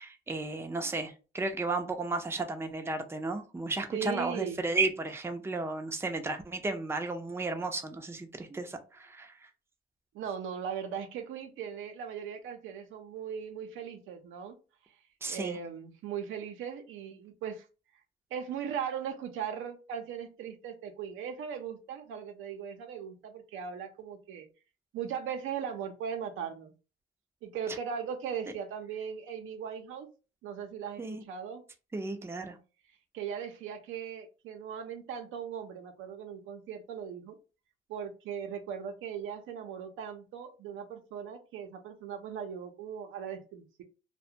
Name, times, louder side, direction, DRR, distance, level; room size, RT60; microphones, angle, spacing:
voice 1, 0.0-9.3 15.2-15.6 31.0-31.2 31.9-32.6, right 3 dB, 10° right, 0.5 m, -34 dB
voice 2, 3.9-4.6 10.1-14.6 15.3-17.6 18.3-24.5 24.9-26.7 27.4-30.1 30.4-31.0 31.3-31.6 33.1-37.4 37.9-43.8, right 7 dB, 85° right, 0.6 m, -38 dB
2.4 x 2.1 x 2.7 m
cardioid pair, 90°, 20 cm